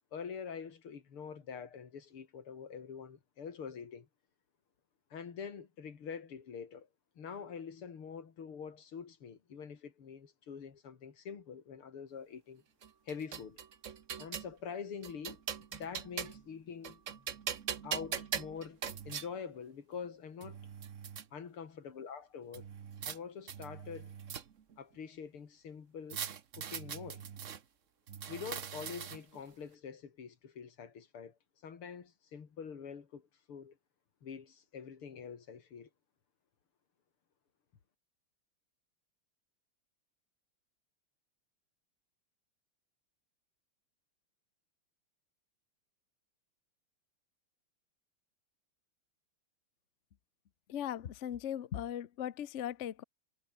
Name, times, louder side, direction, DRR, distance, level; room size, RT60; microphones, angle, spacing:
voice 1, 0.1-4.1 5.1-6.9 7.2-12.6 13.1-13.6 14.2-15.4 15.7-17.3 17.8-20.6 21.3-22.7 23.0-24.2 24.8-26.2 26.5-27.2 28.3-31.3 31.6-33.8 34.2-35.9, left 6 dB, 85° left, 3.4 m, -45 dB
sound 1, 12.8-14.5 15.0-16.5 16.8-19.3 20.0-20.1 20.4-21.2 22.5-23.2 23.5-24.7 26.1-27.6 28.1-29.4, right 8 dB, 45° right, 1.2 m, -41 dB
voice 2, 50.7-53.0, left 10 dB, 55° left, 0.8 m, -38 dB
omnidirectional pair, 2.3 m